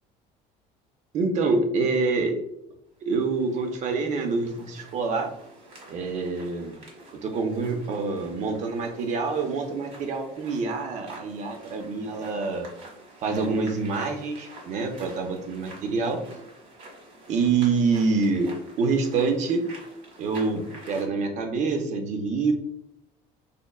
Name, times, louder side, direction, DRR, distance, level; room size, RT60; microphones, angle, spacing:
voice 1, 1.1-2.3 3.0-5.3 5.9-6.8 7.2-12.7 13.2-16.2 17.3-19.6 20.2-22.5, right 4 dB, 45° right, 5 dB, 0.6 m, -26 dB
sound 1, 3.0-21.0, right 2 dB, 65° right, 1.4 m, -48 dB
5.0 x 2.2 x 2.3 m, 0.80 s
cardioid pair, 145°, 17 cm